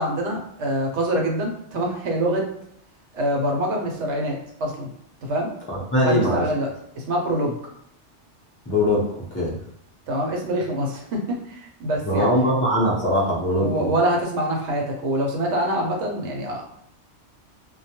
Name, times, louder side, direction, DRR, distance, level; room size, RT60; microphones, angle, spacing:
voice 1, 0.0-2.5 3.1-4.9 5.2-5.5 6.0-7.6 10.1-12.3 13.6-16.6, right 1 dB, 80° right, 0 dB, 0.9 m, -25 dB
voice 2, 5.7-6.5 8.7-9.6 12.0-13.9, equal, 15° left, -4 dB, 0.4 m, -21 dB
2.2 x 2.1 x 2.8 m, 0.70 s
omnidirectional pair, 1.2 m